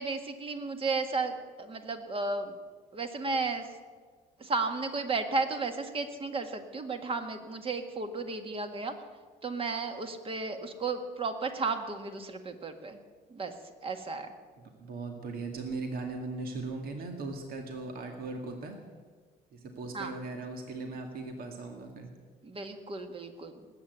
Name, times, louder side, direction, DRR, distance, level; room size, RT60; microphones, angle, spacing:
voice 1, 0.0-2.6 2.9-3.7 4.4-8.9 9.4-13.0 13.3-13.5 13.8-14.3 19.9-20.1 22.4-23.5, right 3 dB, 35° right, 6 dB, 1.8 m, -33 dB
voice 2, 14.8-18.7 19.5-22.1, right 3 dB, 60° right, 3 dB, 2.1 m, -38 dB
19.5 x 8.8 x 8.2 m, 1.5 s
cardioid pair, 110°, 17 cm